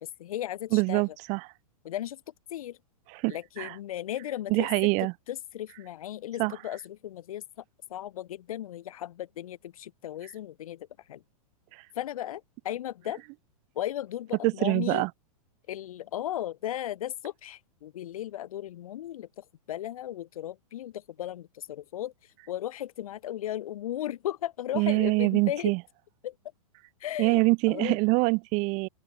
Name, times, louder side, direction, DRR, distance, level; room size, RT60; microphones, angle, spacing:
voice 1, 0.0-1.0 1.8-2.2 2.5-2.8 3.3-4.9 5.3-7.6 7.9-11.2 11.9-13.2 13.8-15.0 15.7-22.1 22.5-25.7 26.2-26.3 27.0-27.4 27.7-28.0, left 12 dB, 70° left, 2.3 m, -36 dB
voice 2, 0.7-1.5 3.1-3.7 4.5-5.1 6.4-6.5 11.7-11.8 14.4-15.1 24.7-25.8 27.2-28.9, right 28 dB, 40° right, 2.7 m, -25 dB
open air
hypercardioid pair, 135°, 19 cm